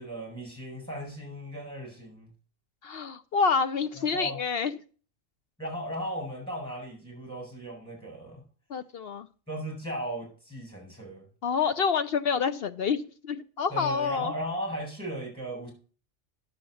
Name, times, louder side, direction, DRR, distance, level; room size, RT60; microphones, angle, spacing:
voice 1, 0.0-2.3 4.0-4.4 5.6-8.4 9.5-11.2 13.7-15.7, right 1 dB, 5° left, 0 dB, 5.9 m, -36 dB
voice 2, 2.8-4.8 8.7-9.3 11.4-14.3, left 5 dB, 60° left, 11 dB, 0.8 m, -28 dB
10.5 x 7.1 x 6.2 m, 0.40 s
omnidirectional pair, 1.3 m